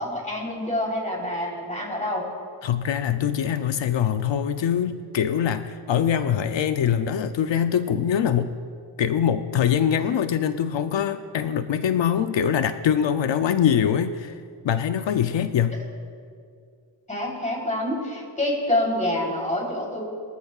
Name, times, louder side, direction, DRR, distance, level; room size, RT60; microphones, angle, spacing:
voice 1, 0.0-2.3 17.1-20.0, left 1 dB, 15° left, -2 dB, 3.5 m, -27 dB
voice 2, 2.6-8.5 9.0-14.3 14.6-15.8, left 8 dB, 90° left, 10 dB, 0.6 m, -23 dB
22.5 x 13.5 x 2.4 m, 2.3 s
wide cardioid pair, 120°, 43 cm